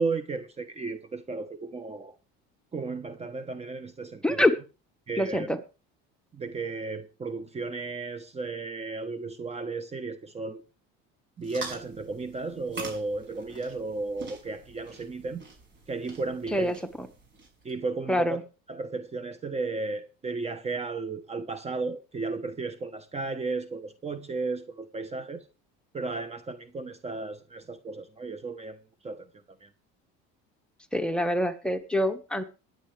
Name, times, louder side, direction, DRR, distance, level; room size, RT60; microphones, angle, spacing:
voice 1, 0.0-2.2 2.7-4.5 5.1-5.5 6.3-10.6 11.4-15.4 15.9-16.8 17.6-18.4 18.7-25.5 25.9-28.8 29.0-29.3 29.6-29.7, right 3 dB, 20° right, 1.1 m, -34 dB
voice 2, 5.2-5.6 16.5-17.1 18.1-18.4 30.9-32.4, left 1 dB, 5° left, 1.4 m, -26 dB
sound 1, 11.4-17.7, right 3 dB, 40° right, 6.1 m, -44 dB
21.5 x 9.1 x 3.3 m
cardioid pair, 115°, 29 cm